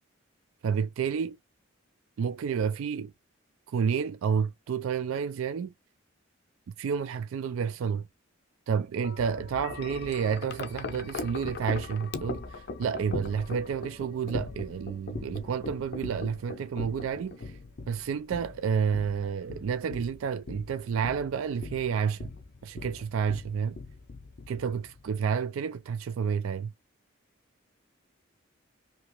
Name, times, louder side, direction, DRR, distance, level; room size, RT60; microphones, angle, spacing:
voice 1, 0.6-1.3 2.2-3.1 3.7-5.7 6.8-8.1 8.7-17.6 17.9-22.3 22.6-23.8 24.5-26.7, right 6 dB, 80° right, 0.3 m, -30 dB
Wind chime, 9.0-25.2, left 3 dB, 50° left, 0.5 m, -40 dB
2.9 x 2.8 x 2.9 m
head